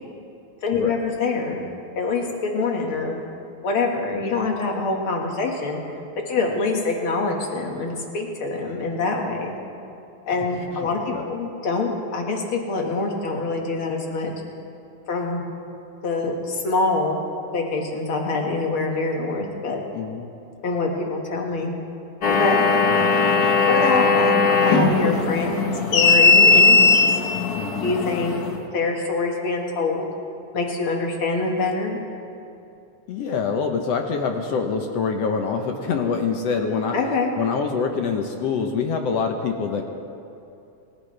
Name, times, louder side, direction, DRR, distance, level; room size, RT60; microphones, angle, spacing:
voice 1, 0.6-1.7 2.0-3.2 3.6-5.8 6.3-9.5 10.3-14.3 15.1-15.4 16.0-17.2 17.5-19.8 20.6-21.7 22.3-22.6 23.7-27.1 27.8-28.4 28.7-30.1 30.5-32.0 36.9-37.3, left 3 dB, 50° left, 1 dB, 2.3 m, -25 dB
voice 2, 10.7-11.3 19.9-20.3 27.6-27.9 33.1-37.0 37.4-39.8, left 5 dB, 65° left, 4 dB, 1.8 m, -25 dB
sound 1, 22.2-28.6, left 4 dB, 90° left, 0.8 m, -18 dB
28.0 x 15.0 x 3.4 m, 2.7 s
omnidirectional pair, 3.5 m